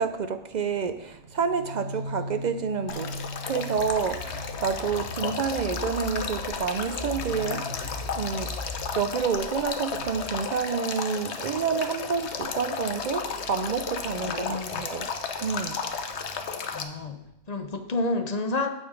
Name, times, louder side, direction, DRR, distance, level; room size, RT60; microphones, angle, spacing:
voice 1, 0.0-3.1 3.5-8.5 9.0-15.1 15.4-15.8, right 6 dB, 60° right, 10 dB, 0.5 m, -29 dB
sound 1, 1.2-13.0, left 1 dB, 85° right, 3.0 m, -40 dB
Male speech man speaking / Stream / Trickle dribble, 2.9-16.8, left 6 dB, 70° left, 1.1 m, -34 dB
voice 2, 14.2-14.9 16.7-18.7, left 2 dB, 40° left, 7 dB, 0.8 m, -30 dB
8.8 x 6.9 x 5.0 m, 0.86 s
omnidirectional pair, 1.2 m